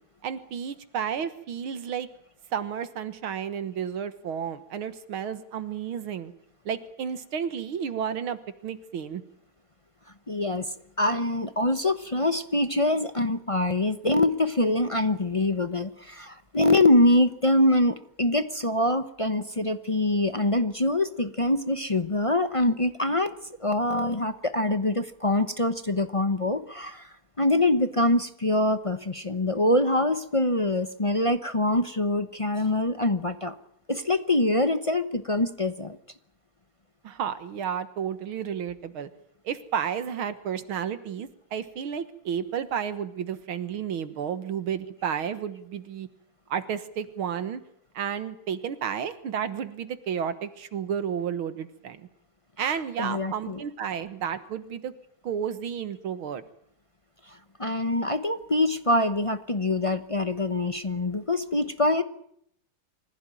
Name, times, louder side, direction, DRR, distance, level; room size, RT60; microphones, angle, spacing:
voice 1, 0.2-2.1 2.5-6.3 6.7-9.2 37.0-39.1 39.4-46.1 46.5-47.6 47.9-52.1 52.6-54.9 55.2-56.4, right 8 dB, 80° right, 11 dB, 2.2 m, -32 dB
voice 2, 10.3-23.3 23.6-33.5 33.9-36.0 52.6-53.6 57.3-62.0, left 1 dB, 35° left, 9 dB, 0.5 m, -24 dB
25.0 x 15.5 x 9.2 m, 0.71 s
omnidirectional pair, 2.2 m